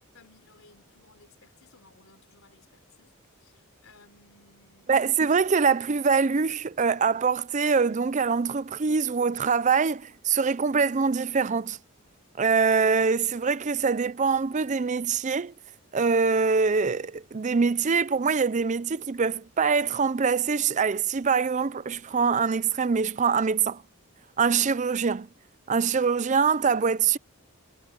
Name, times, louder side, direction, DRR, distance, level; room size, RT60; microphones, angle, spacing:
voice 1, 0.1-3.1 3.4-5.1, left 3 dB, 70° left, 3.8 m, -58 dB
voice 2, 4.9-11.8 12.4-15.5 15.9-23.8 24.4-25.3 25.7-27.2, right 5 dB, 35° right, 0.5 m, -24 dB
head